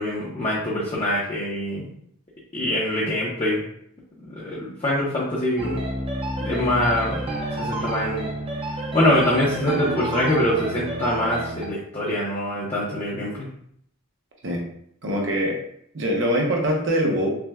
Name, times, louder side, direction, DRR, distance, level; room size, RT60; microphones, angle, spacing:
voice 1, 0.0-1.9 2.5-3.6 4.2-5.8 6.4-7.2 7.6-8.3 8.9-13.5, left 1 dB, 30° left, -6 dB, 0.6 m, -24 dB
sound 1, 5.6-11.7, right 1 dB, 25° right, 0.6 m, -29 dB
voice 2, 15.0-15.6 15.9-17.4, equal, 55° right, 0 dB, 0.8 m, -23 dB
5.8 x 2.2 x 2.3 m, 0.69 s
head